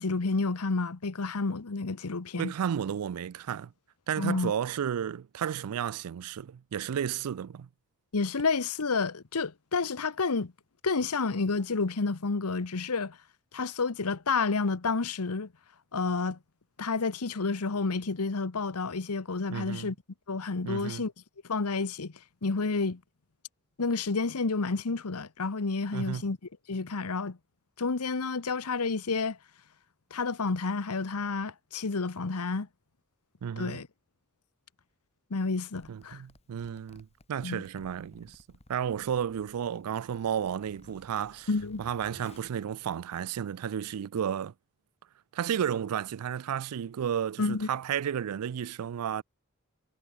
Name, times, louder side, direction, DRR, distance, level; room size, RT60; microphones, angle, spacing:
voice 1, 0.0-2.5 4.2-4.5 8.1-10.5 10.8-13.2 13.5-15.5 15.9-16.4 16.8-19.9 20.3-21.1 21.4-22.1 22.4-23.0 23.8-26.4 26.7-27.4 27.8-29.4 30.1-32.7 33.6-33.9 35.3-36.2 37.4-37.6 41.5-41.8 47.4-47.7, left 4 dB, 85° left, 1.0 m, -30 dB
voice 2, 2.4-3.7 4.1-7.7 19.5-19.9 20.6-21.0 25.9-26.2 33.4-33.8 35.9-38.4 38.7-41.5 41.8-44.5 45.3-49.2, right 8 dB, 80° right, 0.4 m, -32 dB
Zipper (clothing), 35.6-43.5, left 1 dB, 30° left, 2.3 m, -57 dB
head